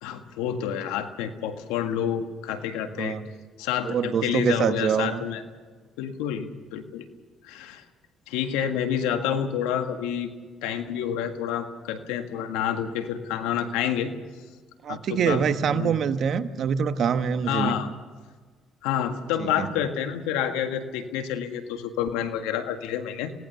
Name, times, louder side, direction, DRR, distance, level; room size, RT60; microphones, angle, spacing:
voice 1, 0.0-3.2 3.6-5.4 6.0-7.0 7.4-7.8 8.3-10.3 10.6-14.1 14.9-15.9 17.5-17.9 18.8-23.3, left 9 dB, 85° left, 7 dB, 1.8 m, -28 dB
voice 2, 3.0-3.3 3.8-5.2 14.8-17.7 19.4-19.7, right 7 dB, 60° right, 10 dB, 1.3 m, -25 dB
27.5 x 18.5 x 7.0 m, 1.5 s
supercardioid pair, 60°, 0 cm